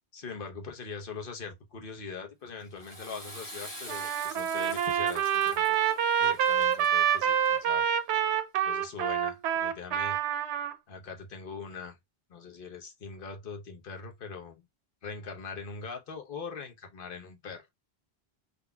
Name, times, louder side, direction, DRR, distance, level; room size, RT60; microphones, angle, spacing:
voice 1, 0.1-5.6 6.2-7.9 8.6-10.2 10.9-12.0 12.3-14.6 15.0-17.7, left 5 dB, 55° left, 1.0 m, -42 dB
Water / Toilet flush, 2.6-7.8, equal, 25° left, 1.4 m, -46 dB
Trumpet, 3.9-10.7, right 9 dB, 90° right, 0.9 m, -27 dB
3.8 x 2.8 x 2.2 m
omnidirectional pair, 1.1 m